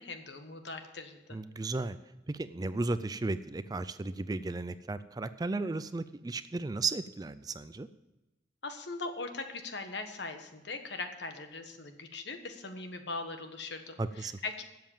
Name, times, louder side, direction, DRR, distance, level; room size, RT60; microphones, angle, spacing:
voice 1, 0.0-1.4 8.6-14.6, left 3 dB, 65° left, 7 dB, 1.3 m, -40 dB
voice 2, 1.3-2.0 2.3-7.9 14.0-14.3, right 3 dB, 20° right, 13 dB, 0.3 m, -34 dB
12.0 x 7.8 x 7.1 m, 1.0 s
head